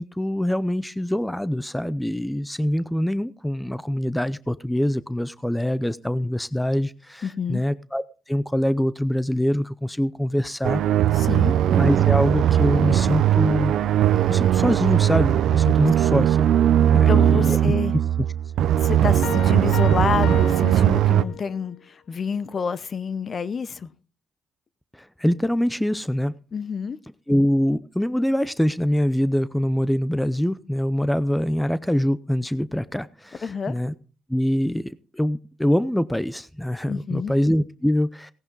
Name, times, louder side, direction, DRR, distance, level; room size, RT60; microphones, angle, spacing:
voice 1, 0.0-10.8 11.8-13.7 14.3-16.5 16.9-17.6 18.6-18.7 24.9-26.3 27.3-33.9 34.3-38.3, equal, 5° left, 0.6 m, -24 dB
voice 2, 7.2-7.6 11.1-11.5 16.9-17.9 18.8-23.9 26.5-27.0 33.4-33.7 36.9-37.3, left 6 dB, 45° left, 0.8 m, -28 dB
sound 1, 10.6-21.2, right 11 dB, 80° right, 0.6 m, -19 dB
Chatter / Traffic noise roadway noise / Train, 11.7-17.6, right 5 dB, 40° right, 0.7 m, -34 dB
sound 2, 19.2-21.7, left 11 dB, 80° left, 0.6 m, -35 dB
17.5 x 10.5 x 3.9 m
cardioid pair, 90°, 0 cm